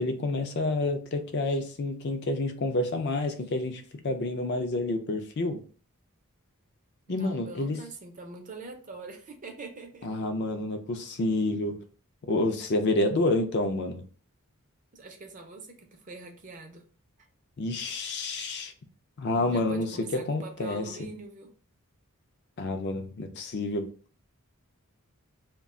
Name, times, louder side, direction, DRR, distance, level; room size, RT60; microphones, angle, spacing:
voice 1, 0.0-5.6 7.1-7.8 10.0-11.8 12.2-14.0 17.6-18.7 19.2-20.8 22.6-23.9, left 2 dB, 50° left, 6 dB, 0.4 m, -29 dB
voice 2, 7.1-10.2 14.9-16.8 19.4-21.5, right 3 dB, 35° right, 3 dB, 0.5 m, -43 dB
2.3 x 2.2 x 3.6 m, 0.41 s
head